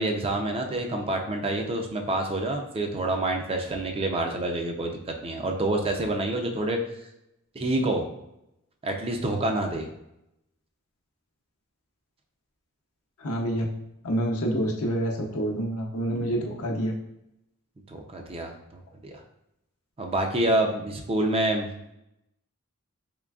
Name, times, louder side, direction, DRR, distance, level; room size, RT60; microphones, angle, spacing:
voice 1, 0.0-6.8 7.5-8.0 8.8-9.9 17.9-19.2 20.0-21.8, right 1 dB, 25° right, 3 dB, 0.4 m, -27 dB
voice 2, 13.2-13.6 14.0-16.9, right 1 dB, 80° left, 0 dB, 0.7 m, -27 dB
3.7 x 3.2 x 2.3 m, 0.84 s
head